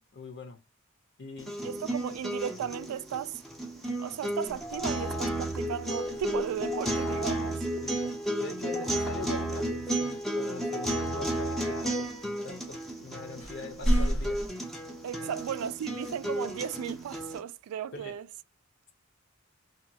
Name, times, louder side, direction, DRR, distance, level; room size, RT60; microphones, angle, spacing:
voice 1, 0.1-0.6 1.2-1.8 7.8-12.1 12.4-14.4 15.2-15.4 17.9-18.1, left 2 dB, 55° left, 0.6 m, -42 dB
sound 1, 1.4-17.4, right 1 dB, ahead, 0.4 m, -33 dB
voice 2, 1.6-3.4 3.7-7.6 15.0-18.3, right 9 dB, 90° right, 0.3 m, -36 dB
sound 2, 6.0-7.0 10.5-10.6 12.6-12.7 13.4-14.5, equal, 90° left, 1.5 m, -31 dB
2.8 x 2.3 x 2.7 m
head